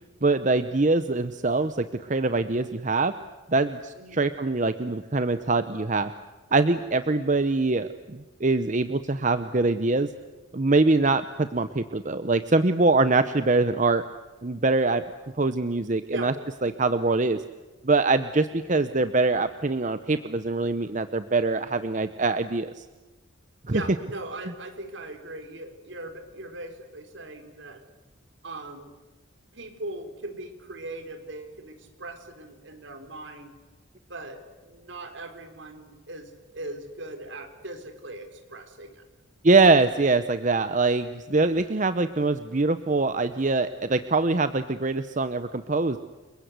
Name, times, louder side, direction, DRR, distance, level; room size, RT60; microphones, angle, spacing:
voice 1, 0.2-3.1 3.5-6.1 6.5-10.1 10.5-14.0 14.4-15.0 15.4-16.3 16.6-17.4 17.8-22.8 23.7-23.8 39.4-46.0, right 3 dB, 40° right, 11 dB, 0.8 m, -23 dB
voice 2, 23.7-27.8 28.4-28.9 29.5-33.5 34.1-39.0, right 2 dB, 70° right, 6 dB, 4.2 m, -39 dB
29.5 x 22.5 x 8.2 m, 1.2 s
head